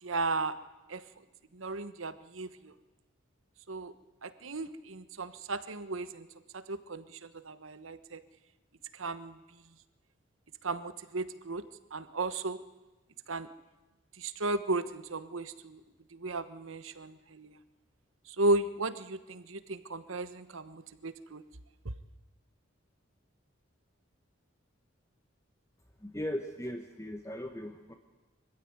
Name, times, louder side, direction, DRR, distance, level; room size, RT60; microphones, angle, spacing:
voice 1, 0.0-0.6 0.9-1.0 1.5-2.7 3.7-3.9 4.2-6.3 6.5-8.2 8.9-9.4 10.6-11.6 11.9-12.6 13.3-13.5 14.2-15.8 16.1-17.6 18.3-21.4 21.8-21.9, right 2 dB, 85° right, 13 dB, 1.2 m, -35 dB
voice 2, 26.0-27.9, equal, 15° left, 5 dB, 1.1 m, -38 dB
24.0 x 15.0 x 9.7 m, 1.1 s
head